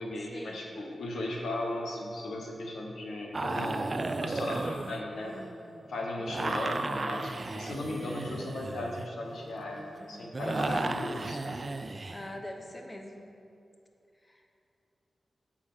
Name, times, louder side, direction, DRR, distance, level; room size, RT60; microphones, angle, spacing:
voice 1, 0.0-5.3 5.9-11.7, left 1 dB, 90° left, -1 dB, 1.0 m, -36 dB
sound 1, 3.3-5.7 6.3-12.3, right 3 dB, 45° right, 0.3 m, -35 dB
voice 2, 6.2-6.5 12.1-13.3 14.2-14.5, left 1 dB, 25° left, 3 dB, 0.8 m, -43 dB
7.4 x 4.9 x 5.4 m, 2.7 s
cardioid pair, 55°, 0 cm